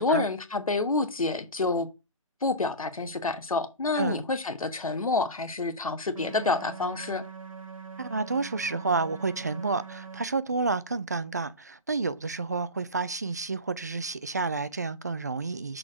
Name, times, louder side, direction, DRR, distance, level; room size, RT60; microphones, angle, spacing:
voice 1, 0.0-1.9 2.4-7.2, left 3 dB, 85° left, 1.2 m, -28 dB
sound 1, 6.1-10.2, right 6 dB, 75° right, 0.9 m, -43 dB
voice 2, 8.0-15.8, right 3 dB, 30° right, 0.3 m, -30 dB
6.2 x 4.4 x 4.9 m
figure-of-eight pair, 165°, 18 cm